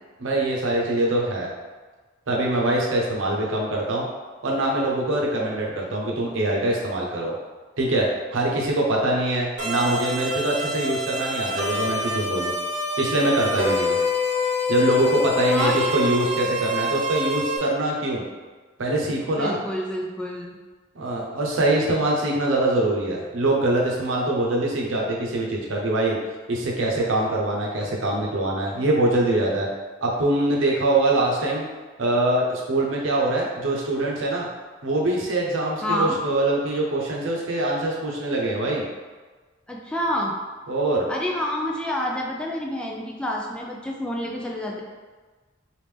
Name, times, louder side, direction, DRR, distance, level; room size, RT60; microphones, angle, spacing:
voice 1, 0.2-1.5 2.3-4.1 4.4-7.3 7.8-12.5 13.0-14.0 14.7-18.2 18.8-19.6 20.9-26.2 26.5-29.7 30.0-31.7 32.0-34.5 34.8-38.8 40.7-41.1, right 1 dB, 85° right, -2 dB, 0.7 m, -23 dB
sound 1, 9.6-17.6, left 2 dB, 45° right, 0.9 m, -26 dB
voice 2, 15.5-15.9 19.4-20.6 35.8-36.2 39.7-40.3 41.1-44.8, left 1 dB, 5° left, -2 dB, 0.3 m, -28 dB
3.2 x 2.5 x 3.5 m, 1.3 s
head